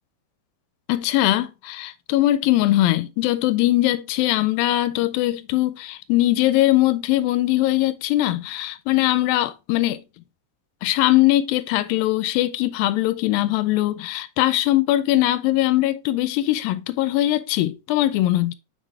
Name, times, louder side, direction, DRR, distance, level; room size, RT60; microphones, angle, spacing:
voice 1, 0.9-10.0 10.8-18.5, left 15 dB, 85° left, 2.2 m, -21 dB
6.1 x 6.0 x 3.4 m
omnidirectional pair, 4.2 m